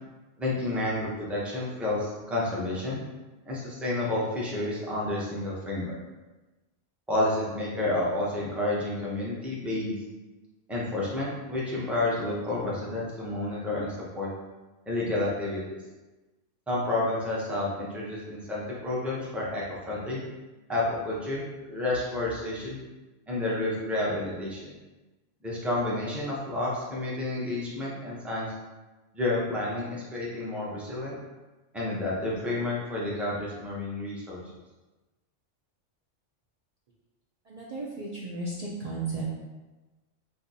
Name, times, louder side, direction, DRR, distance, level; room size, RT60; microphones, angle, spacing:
voice 1, 0.4-3.0 3.4-6.0 7.1-10.0 10.7-14.3 14.9-15.8 16.7-20.2 20.7-21.4 21.7-22.8 23.3-24.7 25.4-28.5 29.1-31.2 31.7-34.4, left 2 dB, ahead, -6 dB, 0.5 m, -30 dB
voice 2, 37.5-39.2, right 3 dB, 80° right, -5 dB, 0.3 m, -34 dB
2.6 x 2.6 x 4.0 m, 1.2 s
omnidirectional pair, 1.3 m